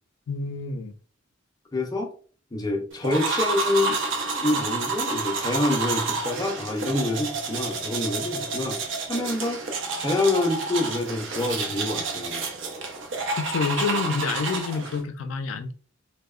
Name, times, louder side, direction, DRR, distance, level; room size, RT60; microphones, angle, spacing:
voice 1, 0.3-0.9 13.4-15.7, left 5 dB, 85° left, 0.4 m, -28 dB
voice 2, 1.7-2.1 2.5-4.0 4.3-8.8 9.1-9.6 10.0-12.4, left 2 dB, 20° left, 0.5 m, -26 dB
sound 1, 3.0-15.0, right 3 dB, 70° right, 0.5 m, -29 dB
2.8 x 2.0 x 2.3 m
head